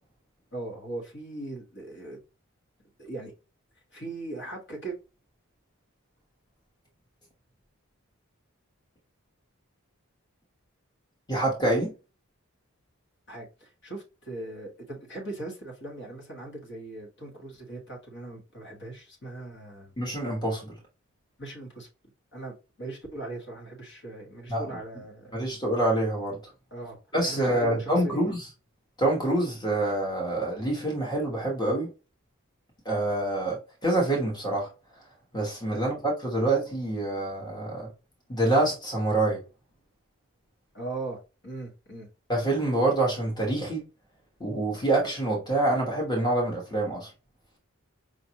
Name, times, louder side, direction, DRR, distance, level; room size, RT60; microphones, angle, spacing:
voice 1, 0.5-2.2 3.0-3.3 3.9-5.0 13.3-19.9 21.4-21.9 22.3-25.4 26.7-27.0 27.3-28.3 35.7-35.8 40.7-42.1, right 2 dB, 50° left, 1.4 m, -39 dB
voice 2, 11.3-11.9 20.0-20.7 24.5-24.6 25.3-26.4 27.1-28.4 29.0-31.9 32.8-34.7 35.3-37.9 38.3-39.4 42.3-43.8 44.4-47.1, right 1 dB, 20° left, 1.2 m, -26 dB
5.0 x 2.5 x 2.8 m
head